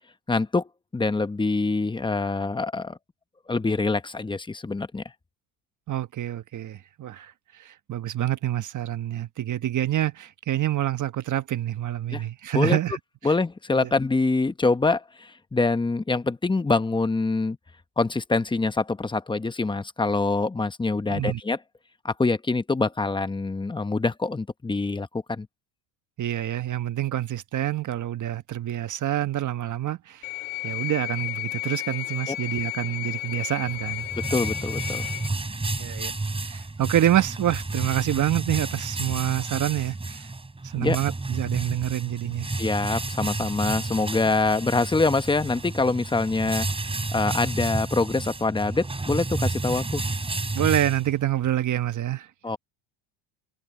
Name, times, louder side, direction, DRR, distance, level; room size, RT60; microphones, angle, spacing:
voice 1, 0.3-3.0 3.5-5.0 12.1-12.2 12.5-12.8 13.2-17.6 18.0-21.6 22.0-25.5 32.3-32.4 34.3-35.1 40.8-41.0 42.6-50.0 52.4-52.6, left 3 dB, 10° left, 1.0 m, -25 dB
voice 2, 5.9-7.3 7.6-13.0 13.8-13.9 21.1-21.4 26.2-30.2 30.6-34.1 35.8-36.1 36.4-40.3 40.7-42.5 50.5-52.3, right 12 dB, 35° right, 1.3 m, -27 dB
sound 1, 30.2-35.3, left 22 dB, 75° left, 0.9 m, -32 dB
sound 2, 33.6-51.5, right 3 dB, 10° right, 3.7 m, -31 dB
cardioid pair, 120°, 50 cm